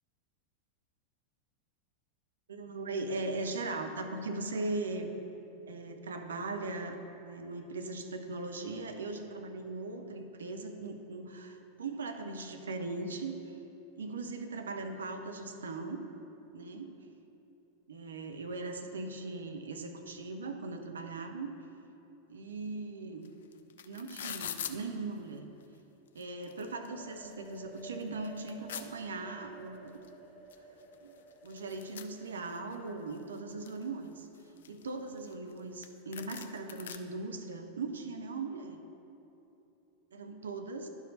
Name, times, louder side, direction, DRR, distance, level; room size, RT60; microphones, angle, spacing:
voice 1, 2.5-5.1 5.7-13.6 14.0-16.0 16.5-16.9 17.9-21.5 22.3-23.3 23.8-25.5 26.1-30.0 31.0-31.1 31.4-34.3 34.7-38.8 40.1-40.9, right 3 dB, 70° right, 6 dB, 0.6 m, -39 dB
sound 1, 23.2-23.3 23.5-24.7 25.6-25.7 26.1-26.9 27.3-27.4 27.8-28.9 30.0-30.1 30.5-30.6 30.8-32.8 33.2-33.8 34.3-35.6 35.8-35.9 36.1-37.0, left 9 dB, 60° left, 0.4 m, -43 dB
sound 2, 26.7-34.4, right 2 dB, 10° left, 1.1 m, -54 dB
11.5 x 4.7 x 4.0 m, 3.0 s
figure-of-eight pair, 90°, 0 cm